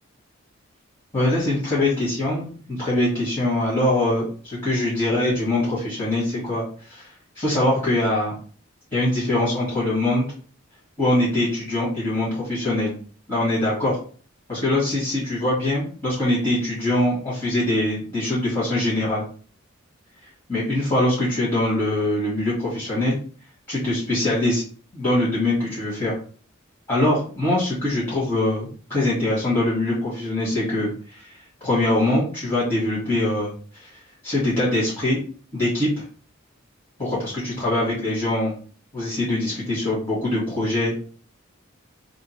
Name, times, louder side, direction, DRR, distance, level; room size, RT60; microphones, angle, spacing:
voice 1, 1.1-7.1 7.4-8.4 8.9-10.3 11.0-12.9 13.3-14.0 14.5-19.2 20.5-23.2 23.7-24.6 24.9-26.2 26.9-31.3 31.6-35.2 35.5-36.0 37.0-38.5 38.9-41.0, left 1 dB, 25° left, -8 dB, 1.8 m, -23 dB
3.6 x 2.4 x 4.4 m, 0.41 s
head